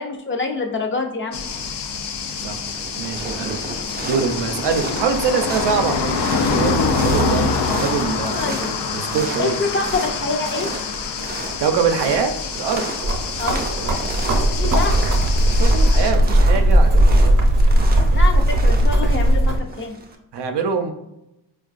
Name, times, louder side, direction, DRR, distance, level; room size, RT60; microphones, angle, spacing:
voice 1, 0.0-1.8 8.4-8.7 9.4-10.7 13.4-13.6 14.6-15.0 18.1-20.0, left 3 dB, 30° left, 2 dB, 0.4 m, -26 dB
sound 1, 1.3-16.1, left 4 dB, 80° left, 0.6 m, -26 dB
sound 2, 1.6-2.0 2.3-20.1, right 3 dB, 25° right, 0.4 m, -33 dB
voice 2, 3.0-3.6 4.0-8.4 8.9-9.6 11.6-12.8 15.6-17.4 20.3-20.9, right 5 dB, 85° right, 6 dB, 0.6 m, -23 dB
sound 3, 13.0-19.6, right 1 dB, 50° right, 0.7 m, -16 dB
4.5 x 2.3 x 2.4 m, 0.87 s
wide cardioid pair, 125°, 40 cm